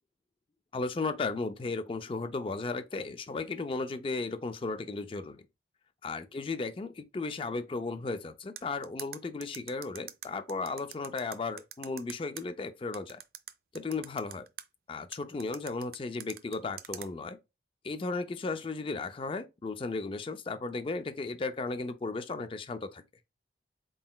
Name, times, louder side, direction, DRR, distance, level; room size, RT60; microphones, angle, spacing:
voice 1, 0.7-5.4 6.0-13.2 13.7-14.5 14.9-17.4 17.8-23.0, left 3 dB, 30° left, 0.3 m, -35 dB
sound 1, 8.6-12.4 12.9-14.6 15.1-17.1, right 11 dB, 55° right, 0.4 m, -43 dB
4.0 x 3.8 x 2.2 m
head